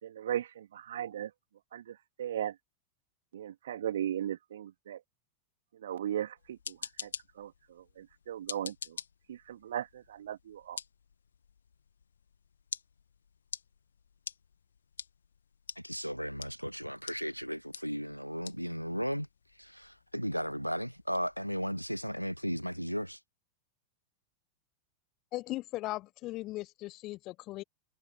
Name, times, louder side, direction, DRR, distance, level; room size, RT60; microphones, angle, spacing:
voice 1, 0.0-1.3 1.7-2.6 3.3-5.0 5.7-7.1 7.4-9.0 9.3-10.8, right 10 dB, 60° right, 3.2 m, -37 dB
sound 1, 6.4-23.2, left 7 dB, 70° left, 2.3 m, -48 dB
voice 2, 15.8-19.3 19.6-23.2, equal, 90° right, 0.9 m, -35 dB
voice 3, 25.3-27.6, left 18 dB, 40° left, 1.2 m, -38 dB
figure-of-eight pair, 90°, 0 cm